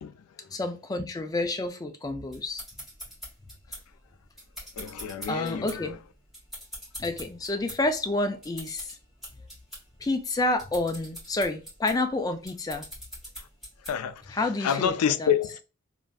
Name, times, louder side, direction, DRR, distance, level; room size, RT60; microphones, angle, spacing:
voice 1, 0.0-0.5 4.8-6.0 13.8-15.6, left 8 dB, 90° left, 0.4 m, -29 dB
voice 2, 0.5-2.6 5.3-6.0 7.0-8.9 10.0-12.8 14.3-15.3, left 2 dB, 15° left, 0.4 m, -29 dB
sound 1, 2.3-14.2, equal, ahead, 1.7 m, -44 dB
3.3 x 2.6 x 2.3 m
head